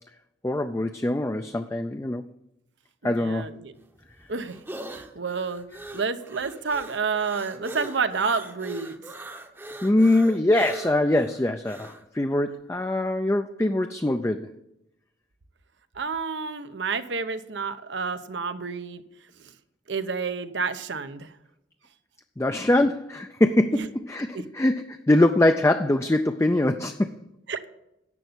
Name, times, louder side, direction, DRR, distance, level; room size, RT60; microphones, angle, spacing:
voice 1, 0.4-2.2 3.0-3.6 9.8-14.5 22.4-27.1, left 1 dB, 15° left, 7 dB, 0.4 m, -23 dB
voice 2, 3.0-3.7 4.3-4.6 4.9-5.7 5.9-8.9 16.0-19.0 19.9-21.3 23.7-23.9 24.3-24.4 27.5-27.7, right 5 dB, 80° right, 10 dB, 0.8 m, -29 dB
sound 1, 3.8-12.0, right 1 dB, 10° right, 0.8 m, -40 dB
11.0 x 7.0 x 7.9 m, 0.87 s
head